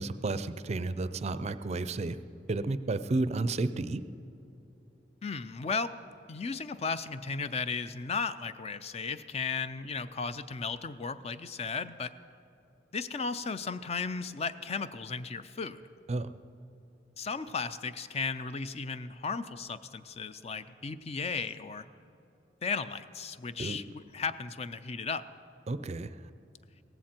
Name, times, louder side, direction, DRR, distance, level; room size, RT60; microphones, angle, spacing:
voice 1, 0.0-2.1 2.5-4.0 16.1-16.3 23.6-23.8 25.7-26.1, right 2 dB, 40° right, 13 dB, 0.5 m, -31 dB
voice 2, 5.2-5.9 6.3-12.1 12.9-15.8 17.2-21.9 22.6-25.2, left 5 dB, 35° left, 12 dB, 0.4 m, -35 dB
17.5 x 15.0 x 4.4 m, 2.9 s
head